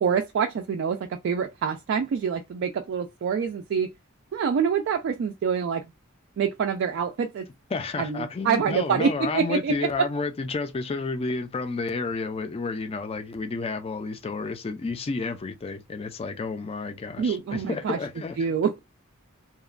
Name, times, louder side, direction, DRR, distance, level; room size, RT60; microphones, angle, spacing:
voice 1, 0.0-3.9 4.3-5.9 6.4-7.5 8.0-10.1 17.2-18.0 18.4-18.8, right 6 dB, 55° right, 0.3 m, -26 dB
voice 2, 7.7-18.6, left 4 dB, 30° left, 0.4 m, -31 dB
2.8 x 2.1 x 2.4 m
head